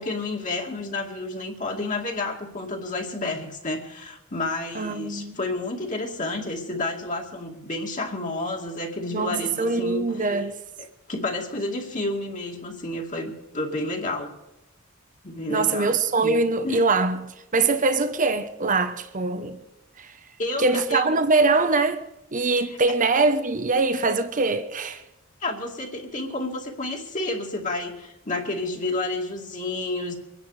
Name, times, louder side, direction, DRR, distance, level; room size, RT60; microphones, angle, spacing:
voice 1, 0.0-10.0 10.8-14.3 15.2-16.4 16.6-16.8 20.4-21.2 25.4-30.2, left 2 dB, 40° left, 2.4 m, -30 dB
voice 2, 4.7-5.4 9.1-10.6 15.5-19.6 20.0-20.1 20.6-22.0 22.3-25.0, right 3 dB, 40° right, 1.0 m, -23 dB
24.5 x 10.0 x 5.0 m
head